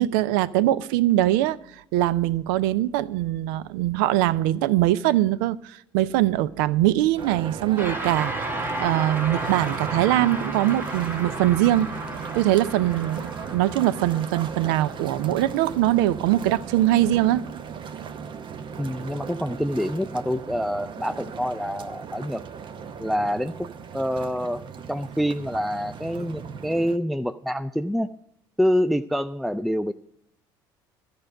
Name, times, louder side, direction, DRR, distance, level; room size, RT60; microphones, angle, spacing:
voice 1, 0.0-1.6 1.9-12.0 12.3-17.4, right 14 dB, 75° right, 0.4 m, -22 dB
sound 1, 7.2-27.0, right 6 dB, 45° right, 0.7 m, -38 dB
sound 2, 7.8-17.2, right 2 dB, 20° right, 1.4 m, -34 dB
voice 2, 18.8-22.4 23.0-23.7 23.9-24.6 24.9-28.1 28.6-29.9, equal, ahead, 0.4 m, -26 dB
13.0 x 5.3 x 8.8 m
hypercardioid pair, 60°, 12 cm